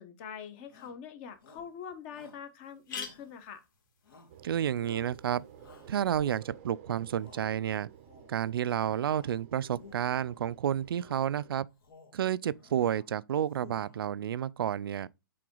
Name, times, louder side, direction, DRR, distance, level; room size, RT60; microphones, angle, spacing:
voice 1, 0.0-3.6, left 7 dB, 30° left, 1.1 m, -44 dB
Shout, 0.7-1.0 1.4-1.7 2.1-2.4 2.9-3.6 4.0-4.4 4.7-5.1 5.6-6.7 7.1-7.5 7.9-8.4 8.7-9.4 9.7-10.4 10.9-11.3 11.7-12.2 12.5-13.1 13.4-14.1, left 4 dB, 75° left, 2.4 m, -56 dB
sound 1, 1.3-1.4 1.9-2.0 2.2-2.3 2.6-6.4, left 6 dB, 55° left, 2.6 m, -48 dB
sound 2, 4.3-11.5, right 10 dB, 35° right, 0.6 m, -53 dB
voice 2, 4.4-5.4 5.9-7.9 8.3-11.7 12.1-15.1, right 10 dB, 85° right, 0.4 m, -30 dB
7.6 x 3.9 x 3.8 m
hypercardioid pair, 165°, 12 cm